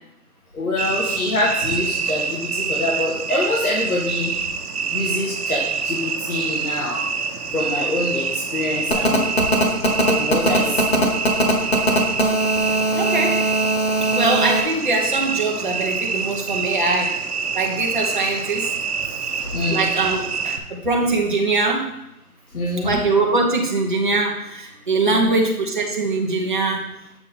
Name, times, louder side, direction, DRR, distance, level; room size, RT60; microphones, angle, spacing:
voice 1, 0.5-4.3 4.9-7.1 7.5-9.3 10.1-11.1 19.5-19.9 22.5-23.0 25.1-25.5, left 2 dB, 70° left, -4 dB, 1.7 m, -25 dB
sound 1, 0.8-20.6, right 6 dB, 85° right, 0.9 m, -26 dB
Telephone, 8.9-14.6, right 1 dB, 45° left, 1.1 m, -20 dB
voice 2, 12.9-13.4 14.1-17.1 17.5-18.7 19.7-21.9 22.8-26.8, right 3 dB, 35° right, 0 dB, 0.8 m, -22 dB
6.9 x 6.0 x 3.6 m, 0.83 s
hypercardioid pair, 175°, 45 cm